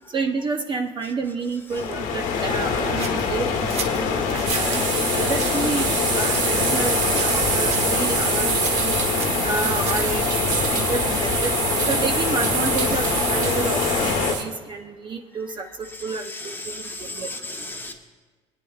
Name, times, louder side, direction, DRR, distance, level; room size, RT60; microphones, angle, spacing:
voice 1, 0.1-4.8 5.2-8.9 9.4-10.3 10.7-11.6 11.9-17.3 17.6-17.7, right 4 dB, 35° right, 4 dB, 0.7 m, -30 dB
sound 1, 1.7-14.3, left 6 dB, 80° left, 1.3 m, -24 dB
sound 2, 3.0-4.9 5.3-5.7 6.3-6.9 7.2-7.4 7.7-8.0 8.6-10.2, right 5 dB, 55° right, 1.2 m, -34 dB
sound 3, 4.4-14.4, right 6 dB, 75° right, 1.1 m, -26 dB
voice 2, 10.5-10.9 15.9-17.9, left 2 dB, 15° left, 2 dB, 1.2 m, -36 dB
20.5 x 9.3 x 2.4 m, 1.4 s
cardioid pair, 110°, 14 cm